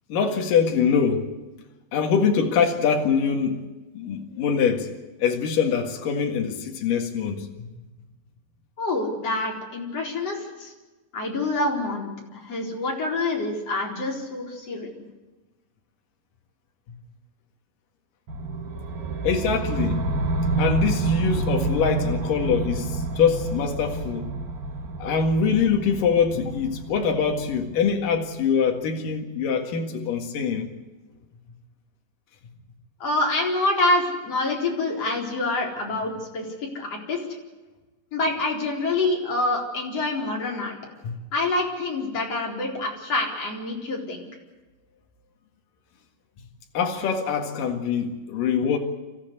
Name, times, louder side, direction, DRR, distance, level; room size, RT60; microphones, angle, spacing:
voice 1, 0.1-1.3 1.9-3.6 3.9-4.9 5.2-7.7 19.2-20.1 20.6-24.3 25.0-30.7 41.0-41.1 46.7-48.8, left 6 dB, 70° left, 3 dB, 3.4 m, -23 dB
voice 2, 8.8-10.7 11.1-14.9 33.0-36.4 36.7-37.3 38.1-40.7 41.3-44.2, left 2 dB, 45° left, -1 dB, 5.1 m, -26 dB
sound 1, 18.3-28.3, right 3 dB, 85° right, 5.1 m, -29 dB
27.0 x 14.5 x 8.2 m, 1.2 s
omnidirectional pair, 4.0 m